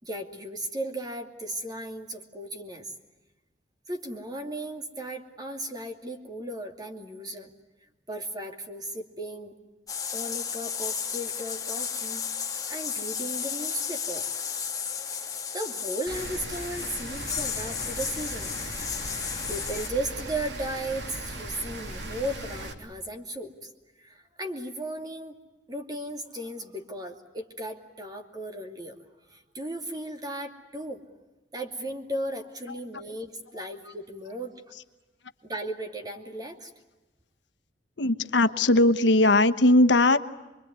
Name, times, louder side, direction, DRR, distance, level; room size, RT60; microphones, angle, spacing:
voice 1, 0.0-2.9 3.9-7.5 8.1-9.5 10.1-14.3 15.1-18.6 19.5-23.7 24.0-25.4 25.7-29.0 29.3-31.0 31.5-34.6 35.4-36.7, right 1 dB, 25° right, 4 dB, 2.6 m, -36 dB
sound 1, 9.9-19.9, left 7 dB, 20° left, 1.9 m, -33 dB
Rain, 16.1-22.7, right 1 dB, 75° right, 3.1 m, -38 dB
voice 2, 38.0-40.2, left 2 dB, 85° left, 10 dB, 1.1 m, -20 dB
26.0 x 23.0 x 9.6 m, 1.1 s
head